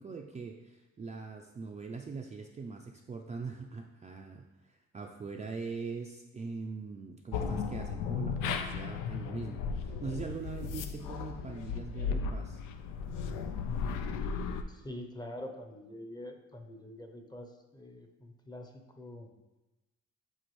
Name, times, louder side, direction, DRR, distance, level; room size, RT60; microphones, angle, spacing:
voice 1, 0.0-12.6, right 4 dB, 25° right, 1 dB, 0.4 m, -42 dB
sound 1, 7.3-14.6, left 5 dB, 90° left, 0.5 m, -35 dB
voice 2, 14.7-19.3, left 1 dB, 15° left, 5 dB, 0.7 m, -45 dB
7.8 x 3.9 x 3.1 m, 1.1 s
cardioid pair, 90°, 30 cm